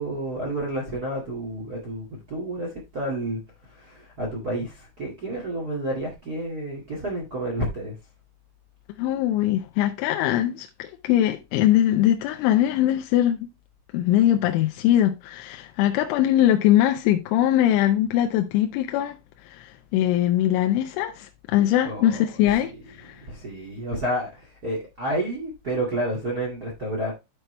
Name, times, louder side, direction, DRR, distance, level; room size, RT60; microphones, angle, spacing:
voice 1, 0.0-3.4 3.7-7.9 21.8-22.2 23.2-27.1, right 1 dB, 55° right, 1.0 m, -30 dB
voice 2, 9.0-13.4 13.9-19.2 19.5-22.7 23.0-23.1, left 12 dB, 80° left, 3.1 m, -21 dB
11.5 x 4.7 x 3.2 m
omnidirectional pair, 5.6 m